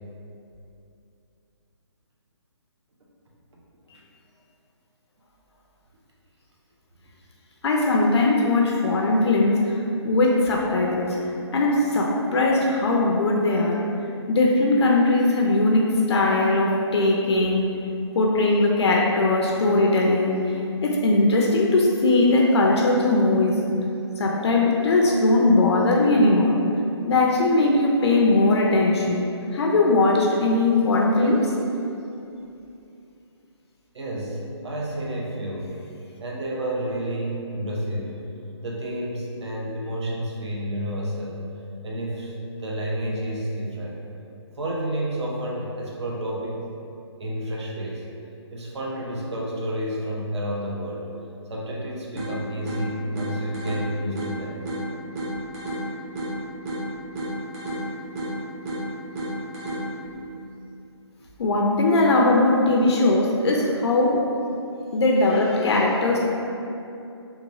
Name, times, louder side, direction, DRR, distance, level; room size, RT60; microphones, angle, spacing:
voice 1, 7.6-9.8 10.0-11.2 11.5-13.8 14.3-17.7 18.1-20.4 20.8-23.6 24.2-26.5 27.0-29.2 29.5-31.5 61.4-64.2 64.9-66.2, left 2 dB, 70° left, -2 dB, 0.4 m, -20 dB
voice 2, 33.9-35.7 36.2-38.2 38.6-41.4 41.8-42.3 42.6-44.0 44.6-46.7 47.2-48.0 48.5-51.1 51.5-54.6 60.0-60.1, right 1 dB, 70° right, -3 dB, 0.6 m, -30 dB
sound 1, 52.2-60.2, right 1 dB, 35° right, 0.7 m, -32 dB
2.9 x 2.2 x 2.6 m, 2.7 s
hypercardioid pair, 155°, 15 cm